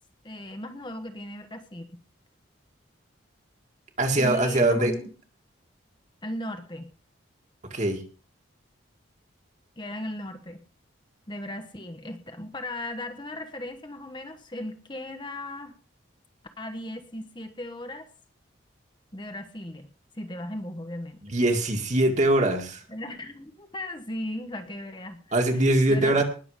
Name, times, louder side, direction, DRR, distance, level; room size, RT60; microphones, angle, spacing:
voice 1, 0.2-2.0 4.2-5.1 6.2-6.9 9.8-10.6 11.3-15.7 16.6-18.1 19.1-19.9 20.1-21.2 22.9-26.2, left 1 dB, 25° left, 6 dB, 1.2 m, -37 dB
voice 2, 4.0-4.9 7.7-8.0 21.2-22.8 25.3-26.2, right 1 dB, 35° right, 4 dB, 2.2 m, -22 dB
20.0 x 7.2 x 5.1 m, 0.39 s
head